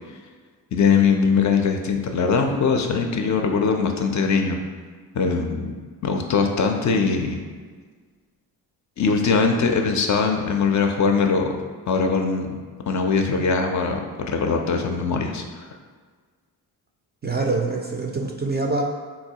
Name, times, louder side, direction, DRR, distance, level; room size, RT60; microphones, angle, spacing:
voice 1, 0.7-4.6 5.1-5.8 6.0-7.4 9.0-11.6 11.9-12.5 12.9-15.7, left 5 dB, 45° left, 4 dB, 0.4 m, -21 dB
voice 2, 17.2-18.8, right 3 dB, 25° right, 0 dB, 0.4 m, -25 dB
4.1 x 2.3 x 2.7 m, 1.5 s
supercardioid pair, 55°, 43 cm